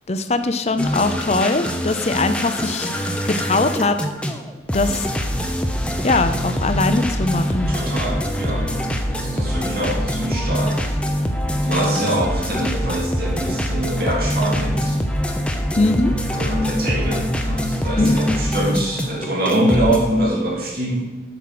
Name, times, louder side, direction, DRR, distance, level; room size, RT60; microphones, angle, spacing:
voice 1, 0.1-4.0 4.7-5.1 6.0-7.7 15.8-16.1 18.0-18.2, left 3 dB, 35° left, 9 dB, 0.6 m, -21 dB
sound 1, 0.8-20.0, equal, 5° left, 0.7 m, -24 dB
voice 2, 7.7-8.7 9.1-10.8 11.6-15.0 16.3-21.0, right 1 dB, 55° right, -2 dB, 2.7 m, -23 dB
8.4 x 6.0 x 6.0 m, 1.2 s
head